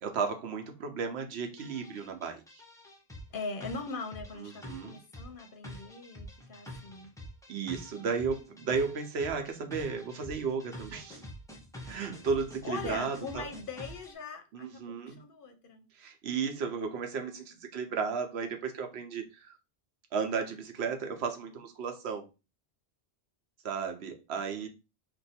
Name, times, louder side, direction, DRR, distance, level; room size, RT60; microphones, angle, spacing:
voice 1, 0.0-2.6 4.4-5.0 7.5-11.2 11.9-13.5 14.5-15.2 15.9-19.6 20.1-22.3 23.6-24.7, right 5 dB, 80° right, 6 dB, 0.9 m, -34 dB
sound 1, 1.6-14.1, equal, 5° left, 0.4 m, -47 dB
voice 2, 3.3-7.1 12.6-15.9, left 4 dB, 60° left, 6 dB, 0.7 m, -41 dB
2.5 x 2.3 x 4.0 m, 0.28 s
omnidirectional pair, 1.1 m